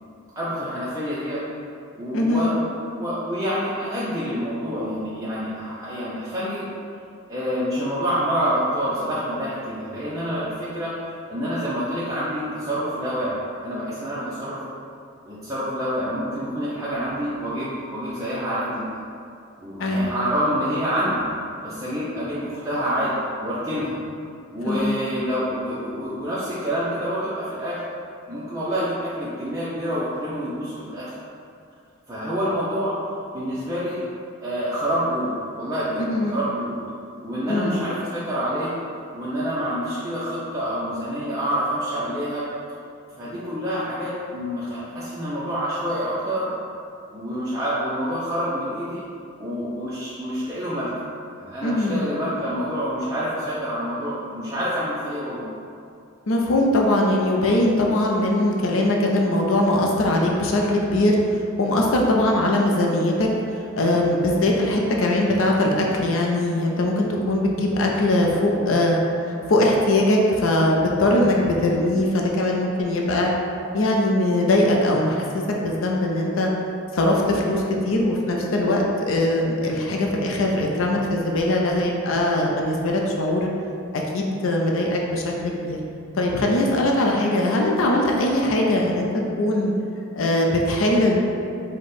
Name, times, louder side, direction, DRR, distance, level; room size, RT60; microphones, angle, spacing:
voice 1, 0.4-1.4 1.9-2.7 3.0-6.7 7.3-10.9 11.3-13.4 13.6-14.6 15.2-18.9 19.6-21.3 21.6-23.2 23.4-24.0 24.5-27.8 28.3-31.1 32.1-32.9 33.3-34.0 34.4-36.8 37.2-38.7 39.1-42.4 43.2-46.5 47.1-49.0 49.4-50.9 51.4-55.5, equal, 15° right, -11 dB, 0.6 m, -27 dB
voice 2, 2.1-2.5 19.8-20.1 24.7-25.0 36.0-36.4 37.5-37.8 51.6-52.0 56.3-61.2 61.6-63.3 63.8-73.3 73.7-76.5 76.9-83.5 83.9-85.8 86.1-89.1 89.4-89.7 90.1-91.2, left 1 dB, 70° left, 0 dB, 0.5 m, -21 dB
4.8 x 2.2 x 4.2 m, 2.4 s
head